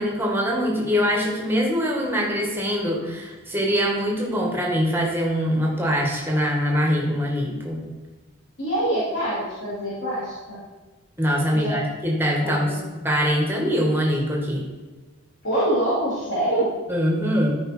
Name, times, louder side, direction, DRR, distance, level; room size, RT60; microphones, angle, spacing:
voice 1, 0.0-7.8 11.2-14.6 16.9-17.6, equal, 10° right, -1 dB, 1.9 m, -23 dB
voice 2, 8.6-10.6 11.5-11.8 12.4-12.8 15.4-16.7, right 1 dB, 60° left, -10 dB, 3.2 m, -25 dB
13.0 x 5.3 x 4.6 m, 1.2 s
head